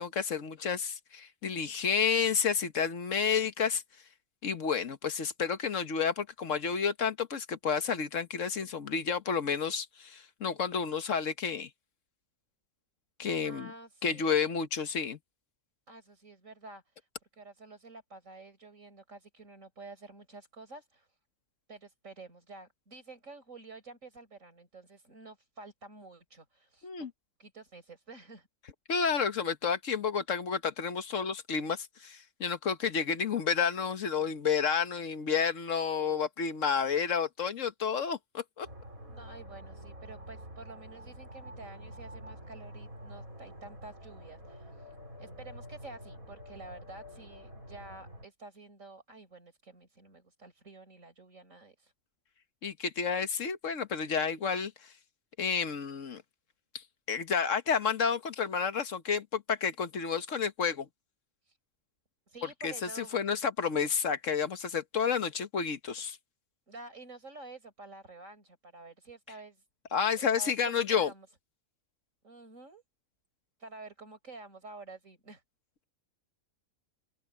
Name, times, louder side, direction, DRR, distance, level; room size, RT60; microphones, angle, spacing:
voice 1, 0.0-3.8 4.4-11.7 13.2-13.7 14.0-15.2 26.8-27.1 28.9-38.7 52.6-54.7 55.4-56.2 57.1-60.9 62.6-66.2 69.9-71.1, left 6 dB, 65° left, 1.5 m, -30 dB
voice 2, 13.4-14.4 15.9-17.1 17.3-21.1 21.7-27.1 27.4-28.5 39.1-51.9 61.4-61.6 62.3-63.2 66.7-69.6 70.2-71.3 72.2-72.8 73.6-75.4, right 3 dB, 65° right, 5.2 m, -50 dB
sound 1, 38.6-48.3, equal, 80° right, 7.6 m, -47 dB
open air
omnidirectional pair, 1.4 m